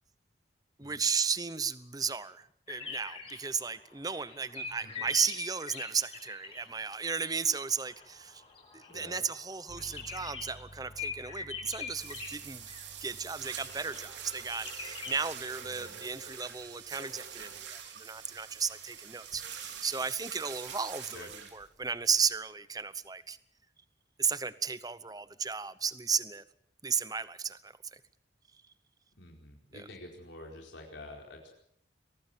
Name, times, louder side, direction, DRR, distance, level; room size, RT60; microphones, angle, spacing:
voice 1, 0.8-8.4 8.7-12.7 13.0-23.4 24.2-26.4 26.8-28.0 29.7-29.9, right 6 dB, 20° right, 15 dB, 0.8 m, -34 dB
sound 1, 2.7-6.7 7.0-12.4 12.7-13.2 13.4-15.2, left 4 dB, 30° left, 6.4 m, -44 dB
voice 2, 4.6-5.1 8.9-9.2 15.6-16.0 21.1-21.3 29.2-31.5, left 1 dB, 85° left, 0 dB, 4.7 m, -49 dB
sound 2, 9.7-20.2, equal, 65° left, 5.8 m, -57 dB
sound 3, 11.9-22.3, right 8 dB, 75° right, 3.7 m, -45 dB
23.5 x 18.5 x 7.3 m, 0.68 s
head